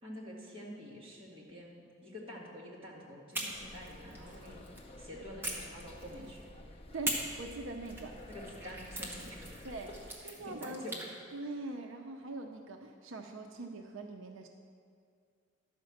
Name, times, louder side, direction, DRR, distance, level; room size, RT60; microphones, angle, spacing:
voice 1, 0.0-4.6 5.0-6.4 8.3-9.7 10.2-11.0, left 1 dB, 30° right, -5 dB, 1.9 m, -47 dB
sound 1, 3.3-4.9 5.4-6.4 7.0-11.1, right 1 dB, 10° right, 1.2 m, -42 dB
sound 2, 3.5-10.1, left 1 dB, 30° left, 0.7 m, -51 dB
voice 2, 6.9-8.1 9.6-9.9 10.2-10.8 11.3-14.5, right 2 dB, 85° right, 4 dB, 0.6 m, -42 dB
11.5 x 5.1 x 7.1 m, 2.3 s
head